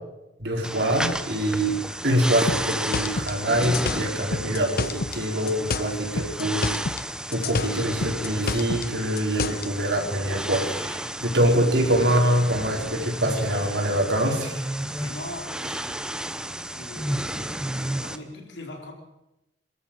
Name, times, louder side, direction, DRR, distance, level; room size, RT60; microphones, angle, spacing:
voice 1, 0.4-1.8 2.0-6.7 7.3-14.6, right 1 dB, 65° right, 1 dB, 4.9 m, -24 dB
sound 1, 0.6-18.2, right 1 dB, 5° right, 0.9 m, -32 dB
sound 2, 2.5-5.2 5.5-7.1 7.3-9.7, left 4 dB, 55° left, 0.7 m, -29 dB
voice 2, 14.9-15.9 16.7-18.9, left 1 dB, 80° left, 2 dB, 4.5 m, -40 dB
24.0 x 13.5 x 8.9 m, 0.91 s
head